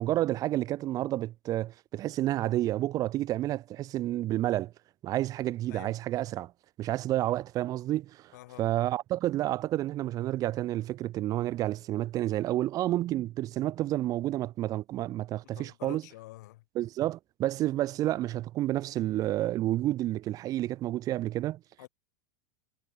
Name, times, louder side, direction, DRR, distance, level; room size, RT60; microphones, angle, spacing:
voice 1, 0.0-4.7 5.0-6.5 6.8-8.3 8.6-16.0 16.7-21.6, right 14 dB, 40° right, 1.0 m, -30 dB
voice 2, 8.3-8.7 15.5-16.6 21.8-21.9, left 18 dB, 70° left, 7.7 m, -47 dB
hypercardioid pair, 120°, 10 cm